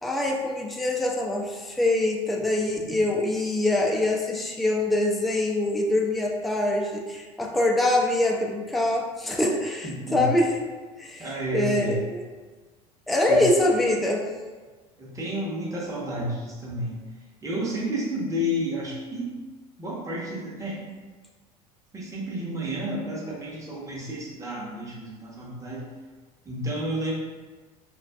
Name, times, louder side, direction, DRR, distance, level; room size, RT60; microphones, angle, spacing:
voice 1, 0.0-10.5 11.0-12.3 13.1-14.2, left 1 dB, ahead, -1 dB, 0.3 m, -24 dB
voice 2, 9.8-10.2 11.2-12.0 13.3-13.4 15.0-17.0 17.4-19.3 19.8-20.8 21.9-25.9 26.5-27.1, equal, 15° right, -6 dB, 0.9 m, -31 dB
2.4 x 2.4 x 2.3 m, 1.3 s
hypercardioid pair, 75°, 19 cm